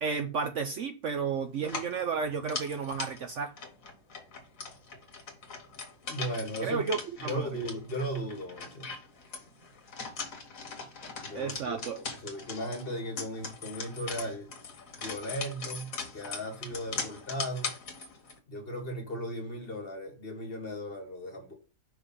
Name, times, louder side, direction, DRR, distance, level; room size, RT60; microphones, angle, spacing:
voice 1, 0.0-3.5 6.6-7.5 11.3-12.0, right 5 dB, 60° right, 0.9 m, -32 dB
sound 1, 1.6-18.4, left 4 dB, 60° left, 1.7 m, -41 dB
voice 2, 6.1-6.8 7.2-8.9 11.2-11.8 12.2-14.5 14.9-17.7 18.5-21.5, equal, 40° left, 1.8 m, -36 dB
5.8 x 4.2 x 5.5 m
omnidirectional pair, 1.6 m